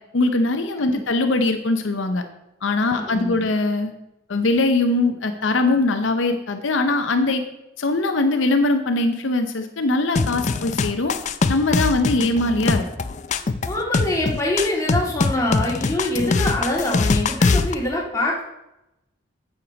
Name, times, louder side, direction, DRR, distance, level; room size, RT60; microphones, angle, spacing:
voice 1, 0.1-2.2 2.6-3.9 4.3-7.4 7.8-11.2 11.5-12.8, left 2 dB, 75° left, 6 dB, 0.7 m, -21 dB
voice 2, 2.9-3.4 13.7-18.4, left 1 dB, 15° left, -3 dB, 1.9 m, -24 dB
sound 1, 10.2-17.7, left 4 dB, 35° left, 0.4 m, -22 dB
8.6 x 6.6 x 5.1 m, 0.90 s
head